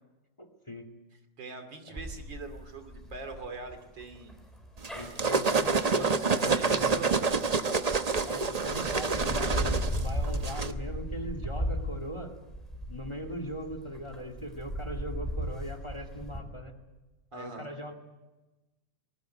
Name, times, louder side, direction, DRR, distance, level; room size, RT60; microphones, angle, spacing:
voice 1, 0.4-0.9 1.9-2.0 4.9-7.0 8.2-12.4 12.9-16.7 17.3-17.9, equal, 15° left, 7 dB, 2.3 m, -40 dB
voice 2, 1.4-4.4 5.3-5.6 5.9-7.3 17.3-17.7, right 3 dB, 85° right, 7 dB, 3.3 m, -42 dB
sound 1, 2.0-7.9 8.5-16.4, equal, ahead, 4.9 m, -36 dB
sound 2, 4.8-10.7, right 4 dB, 35° right, 0.6 m, -28 dB
20.5 x 18.5 x 9.7 m, 1.1 s
omnidirectional pair, 1.9 m